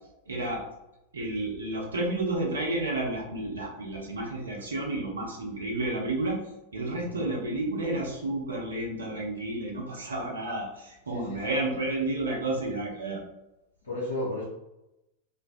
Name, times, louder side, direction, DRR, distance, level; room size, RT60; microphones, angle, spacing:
voice 1, 0.3-0.6 1.1-6.4 6.7-13.2, right 2 dB, 70° right, -2 dB, 0.6 m, -31 dB
voice 2, 6.9-7.2 11.1-11.6 13.8-14.4, left 1 dB, 70° left, -8 dB, 0.7 m, -34 dB
2.5 x 2.2 x 2.3 m, 0.91 s
figure-of-eight pair, 90°, 0 cm